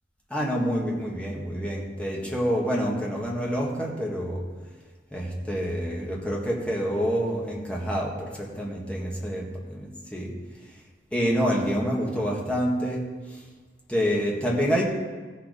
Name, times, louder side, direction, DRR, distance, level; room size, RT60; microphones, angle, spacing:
voice 1, 0.3-4.4 5.1-9.4 10.1-10.3 11.1-13.1 13.9-14.8, equal, 5° left, -3 dB, 1.8 m, -27 dB
15.5 x 6.7 x 5.1 m, 1.4 s
head